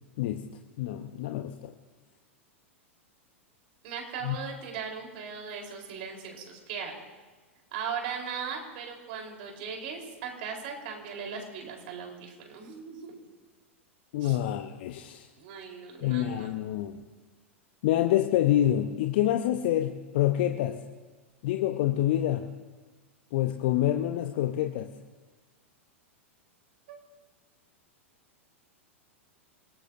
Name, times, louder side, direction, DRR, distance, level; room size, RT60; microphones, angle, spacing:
voice 1, 0.8-1.7 4.2-4.4 14.1-15.3 16.0-17.0 17.8-20.8 21.4-22.5 23.3-24.9, left 12 dB, 50° left, 6 dB, 0.8 m, -27 dB
voice 2, 3.8-7.0 7.7-13.1 14.2-14.4 15.3-16.5 26.9-27.0, right 6 dB, 50° right, 1 dB, 4.0 m, -38 dB
28.0 x 18.0 x 2.7 m, 1.3 s
figure-of-eight pair, 95°, 7 cm